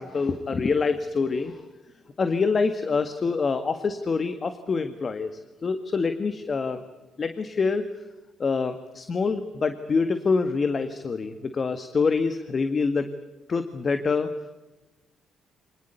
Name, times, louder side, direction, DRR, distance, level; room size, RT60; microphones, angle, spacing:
voice 1, 0.0-1.7 2.2-5.3 5.6-6.8 7.2-7.8 8.4-13.1 13.5-14.3, left 4 dB, 40° left, 9 dB, 1.8 m, -26 dB
25.5 x 19.5 x 8.2 m, 1.1 s
cardioid pair, 90°, 0 cm